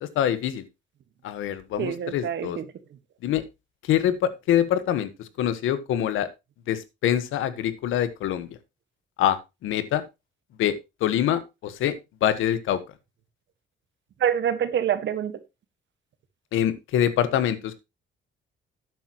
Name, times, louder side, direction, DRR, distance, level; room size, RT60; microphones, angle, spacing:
voice 1, 0.0-0.7 1.2-2.6 3.2-3.4 3.8-6.3 6.7-8.5 9.2-10.0 10.6-11.9 12.2-12.8 16.5-17.8, left 10 dB, 85° left, 14 dB, 1.4 m, -25 dB
voice 2, 1.8-2.6 14.2-15.4, right 9 dB, 65° right, 11 dB, 1.6 m, -26 dB
12.0 x 9.2 x 3.0 m, 0.24 s
cardioid pair, 90°, 20 cm